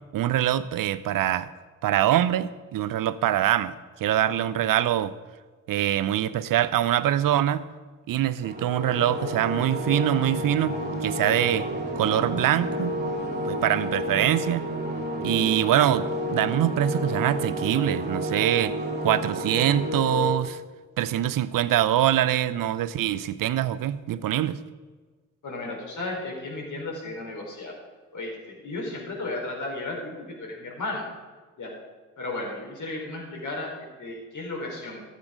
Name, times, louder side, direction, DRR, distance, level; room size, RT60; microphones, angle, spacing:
voice 1, 0.1-1.5 1.8-5.1 5.7-7.6 8.1-11.7 12.0-12.9 13.4-14.6 15.2-16.1 16.3-18.7 19.0-20.6 21.0-24.6, right 12 dB, 50° right, 16 dB, 0.7 m, -24 dB
sound 1, 8.4-20.3, equal, 25° right, 2.8 m, -30 dB
voice 2, 25.4-27.7 28.1-31.1 31.6-31.8 32.2-35.0, left 2 dB, 45° left, -1 dB, 4.4 m, -34 dB
13.5 x 8.4 x 5.0 m, 1.4 s
hypercardioid pair, 45°, 42 cm